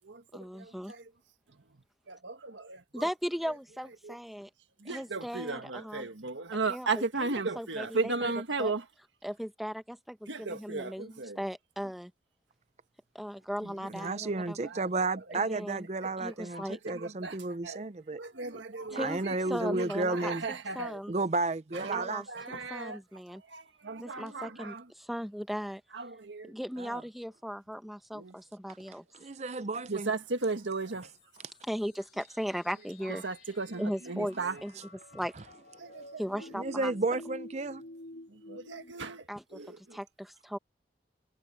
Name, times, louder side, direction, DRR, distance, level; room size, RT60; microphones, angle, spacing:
voice 1, 0.3-0.9 2.9-4.5 4.8-6.1 6.7-7.3 7.5-8.3 8.6-8.7 9.2-12.1 13.1-14.6 15.3-15.8 16.2-16.8 18.9-19.2 19.5-21.1 21.9-23.4 24.0-25.8 26.4-29.0 31.6-33.2 33.8-34.8 35.1-35.3 36.2-36.9 39.3-39.6 39.9-40.6, equal, ahead, 1.1 m, -37 dB
voice 2, 2.1-3.0 4.0-4.1 4.8-8.8 10.3-11.4 13.6-13.7 16.5-17.4 17.6-17.8 18.2-19.3 19.6-21.0 21.8-23.0 23.5-24.8 25.9-26.5 28.1-28.3 29.9-31.1 33.2-34.6 35.8-36.2 38.5-39.2 39.5-40.0, right 3 dB, 85° right, 1.7 m, -35 dB
voice 3, 13.9-18.2 19.0-20.4 21.1-22.3 26.8-27.0 29.1-30.1 34.8-34.9 36.5-37.8, right 3 dB, 35° right, 0.5 m, -32 dB
sound 1, 30.8-38.9, left 1 dB, 60° left, 5.9 m, -51 dB
head